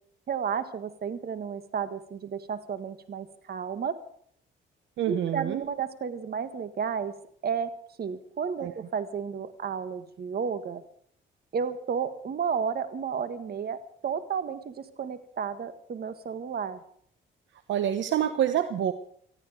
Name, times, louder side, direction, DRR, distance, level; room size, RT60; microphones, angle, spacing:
voice 1, 0.3-4.0 5.1-7.2 7.4-7.7 8.0-10.8 11.5-16.8, right 6 dB, 50° right, 11 dB, 1.8 m, -32 dB
voice 2, 5.0-5.6 8.6-8.7 17.7-18.9, right 10 dB, 70° right, 10 dB, 1.0 m, -27 dB
19.0 x 14.0 x 5.1 m, 0.63 s
cardioid pair, 90°, 20 cm